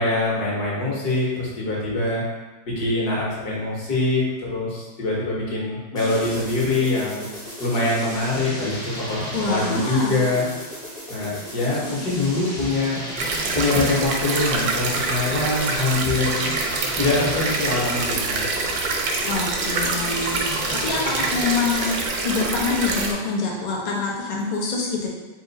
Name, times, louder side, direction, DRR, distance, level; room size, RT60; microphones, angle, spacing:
voice 1, 0.0-2.2 2.7-7.3 7.6-10.5 11.1-13.0 13.5-16.5 17.0-18.5, left 2 dB, 65° left, -5 dB, 1.7 m, -24 dB
sound 1, 6.0-22.2, equal, 5° left, 0.5 m, -35 dB
voice 2, 9.3-10.2 19.2-22.0 22.2-25.1, left 4 dB, 85° left, -3 dB, 0.3 m, -26 dB
sound 2, 13.2-23.1, right 3 dB, 70° right, 1.0 m, -26 dB
4.2 x 2.5 x 4.0 m, 1.2 s
omnidirectional pair, 1.9 m